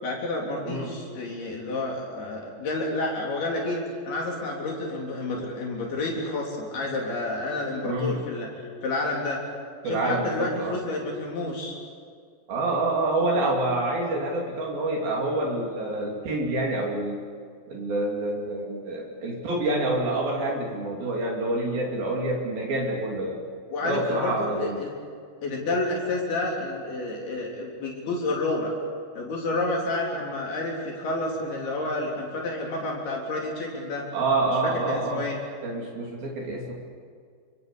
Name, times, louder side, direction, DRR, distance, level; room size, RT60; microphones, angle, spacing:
voice 1, 0.0-3.8 4.1-8.5 8.8-9.4 9.8-11.8 23.7-24.9 25.4-28.7 29.1-34.0 34.5-34.6 34.9-35.4, left 2 dB, 65° left, -2 dB, 5.4 m, -30 dB
voice 2, 7.8-8.2 9.8-10.8 12.5-17.2 17.7-23.4 23.8-24.8 34.1-35.3 35.6-36.7, right 2 dB, 60° right, -1 dB, 4.6 m, -27 dB
28.0 x 26.0 x 7.0 m, 2.1 s
omnidirectional pair, 4.9 m